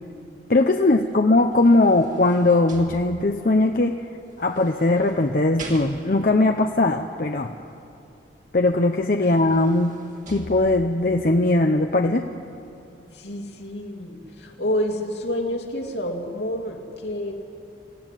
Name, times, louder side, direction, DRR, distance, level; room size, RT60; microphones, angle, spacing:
voice 1, 0.5-4.0 4.4-7.5 8.5-10.0 10.3-12.3, left 2 dB, 50° left, 4 dB, 0.8 m, -20 dB
sound 1, 1.3-3.5 4.4-6.4 8.6-8.7 9.1-11.1 11.7-11.8, right 1 dB, 45° right, 2.6 m, -42 dB
voice 2, 13.1-17.3, equal, 75° left, 1 dB, 2.8 m, -29 dB
26.0 x 15.0 x 9.1 m, 2.6 s
head